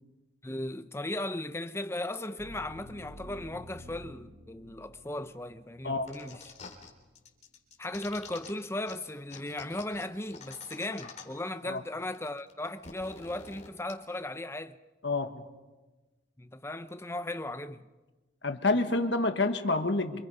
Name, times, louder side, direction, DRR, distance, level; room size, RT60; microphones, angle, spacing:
voice 1, 0.4-6.5 7.8-14.8 16.4-17.9, left 1 dB, 15° left, 0.7 m, -37 dB
sound 1, 2.4-7.1, equal, 70° right, 2.9 m, -51 dB
sound 2, 6.1-6.9 7.2-8.5 8.9-9.0 9.3-11.5 11.8-11.9 12.0-13.9, left 5 dB, 35° left, 3.7 m, -47 dB
voice 2, 15.0-15.4 18.4-20.2, left 2 dB, 60° left, 1.5 m, -28 dB
28.0 x 26.5 x 5.6 m
head